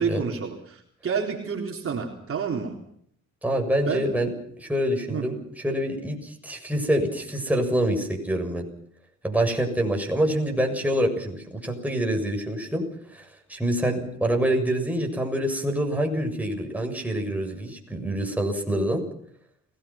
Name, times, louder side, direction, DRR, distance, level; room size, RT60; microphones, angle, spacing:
voice 1, 0.0-2.8 3.9-4.0 5.1-5.3, right 6 dB, 45° right, 1 dB, 4.0 m, -29 dB
voice 2, 3.4-4.3 4.6-8.7 9.2-12.8 13.1-19.0, right 1 dB, 5° right, 2 dB, 7.0 m, -26 dB
29.0 x 19.5 x 6.0 m, 0.66 s
cardioid pair, 90°, 30 cm